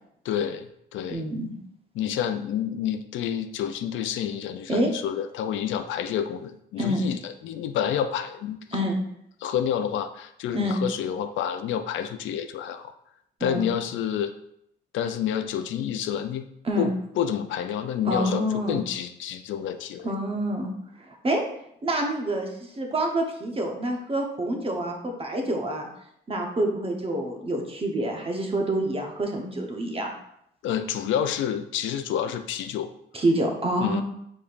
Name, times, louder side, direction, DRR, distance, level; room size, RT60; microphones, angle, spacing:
voice 1, 0.2-1.2 1.9-8.8 9.4-12.9 13.4-14.3 14.9-16.5 16.8-20.1 30.6-32.9 33.8-34.0, left 9 dB, 75° left, 8 dB, 0.4 m, -29 dB
voice 2, 1.1-1.5 4.7-4.9 6.8-7.0 8.7-9.0 10.5-10.8 13.4-13.6 16.6-16.9 18.1-18.8 20.0-20.7 21.0-21.4 21.8-22.5 22.8-25.9 26.3-30.1 33.1-34.0, right 1 dB, 30° right, 2 dB, 1.0 m, -27 dB
5.0 x 4.2 x 2.5 m, 0.74 s
cardioid pair, 90°, 20 cm